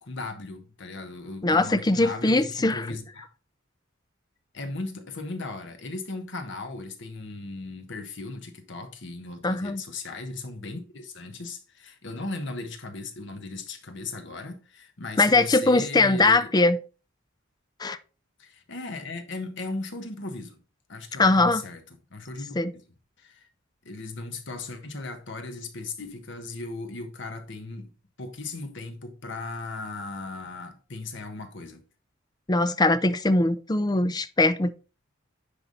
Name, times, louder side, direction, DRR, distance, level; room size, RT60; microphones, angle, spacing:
voice 1, 0.0-3.3 4.5-16.5 18.4-20.6 20.9-21.8 22.1-22.8 23.2-23.5 23.8-27.9 28.2-31.8, left 3 dB, 65° left, 1.4 m, -37 dB
voice 2, 1.4-3.0 9.4-9.8 15.2-16.8 17.8-18.0 21.2-21.6 22.6-22.7 32.5-34.7, left 2 dB, 20° left, 0.5 m, -21 dB
10.0 x 3.6 x 4.1 m
head